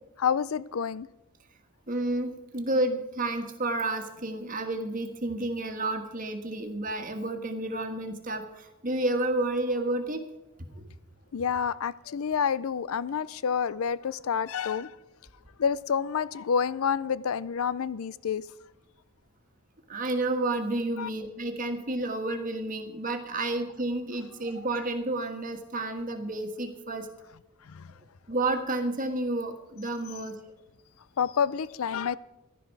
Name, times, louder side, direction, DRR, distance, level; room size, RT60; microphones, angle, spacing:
voice 1, 0.2-1.1 11.3-14.9 15.6-18.4 21.0-21.1 27.7-27.9 31.2-32.2, left 7 dB, 80° left, 0.5 m, -28 dB
voice 2, 1.9-10.2 10.7-10.8 19.9-27.1 28.3-30.4, right 2 dB, 40° right, 1.5 m, -30 dB
16.0 x 11.5 x 4.7 m
head